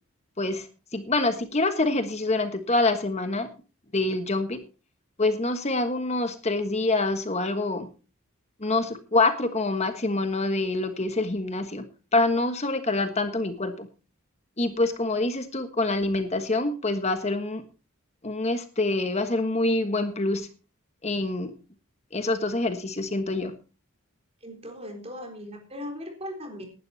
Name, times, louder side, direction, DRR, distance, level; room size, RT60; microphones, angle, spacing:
voice 1, 0.9-3.5 3.9-4.6 5.2-7.9 8.6-11.9 12.1-13.9 14.6-17.6 18.2-20.5 21.0-21.5 22.1-23.5, left 2 dB, 30° left, 8 dB, 1.4 m, -26 dB
voice 2, 24.4-26.7, left 1 dB, 30° right, 4 dB, 3.8 m, -38 dB
19.5 x 12.0 x 2.8 m, 0.33 s
head